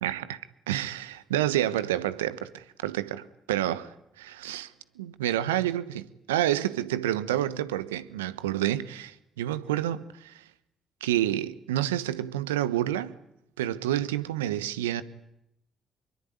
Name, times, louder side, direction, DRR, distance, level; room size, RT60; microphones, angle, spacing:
voice 1, 0.0-0.4 0.7-3.9 4.2-4.7 5.0-10.4 11.0-13.1 13.6-15.0, right 13 dB, 85° right, 1.2 m, -29 dB
25.5 x 23.0 x 9.6 m
hypercardioid pair, 45°, 0 cm